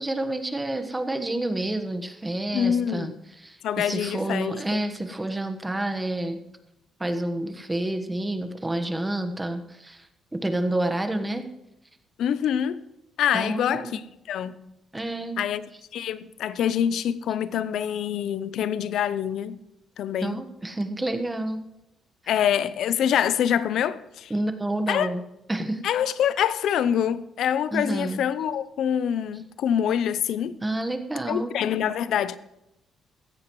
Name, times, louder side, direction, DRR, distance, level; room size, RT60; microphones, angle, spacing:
voice 1, 0.0-3.1 3.4-6.4 7.0-10.1 10.3-11.5 13.3-14.0 14.9-15.4 20.2-21.6 24.3-25.2 25.5-25.8 27.7-28.2 30.6-31.5, right 1 dB, 15° right, 1.3 m, -29 dB
voice 2, 2.5-3.2 3.6-4.8 12.2-12.8 13.2-14.0 14.3-14.7 15.4-15.6 15.9-19.6 20.0-20.4 22.3-24.3 24.9-25.1 25.8-30.6 31.3-32.4, left 9 dB, 75° left, 0.6 m, -25 dB
16.5 x 13.5 x 3.1 m
cardioid pair, 90°, 0 cm